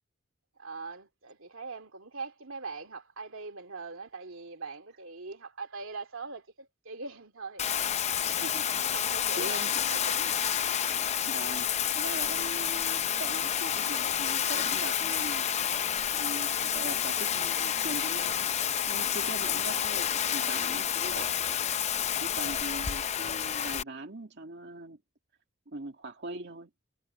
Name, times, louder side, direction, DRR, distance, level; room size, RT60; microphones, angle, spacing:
voice 1, 0.6-7.8 8.3-8.4 8.8-9.6 9.9-10.6, right 4 dB, 75° right, 2.6 m, -42 dB
Bathtub (filling or washing), 7.6-23.8, left 9 dB, 35° left, 0.5 m, -29 dB
voice 2, 8.3-8.7 9.3-10.0 11.2-15.5 16.1-18.5 18.9-21.4 22.2-25.0 25.7-26.7, right 2 dB, 55° right, 2.2 m, -41 dB
head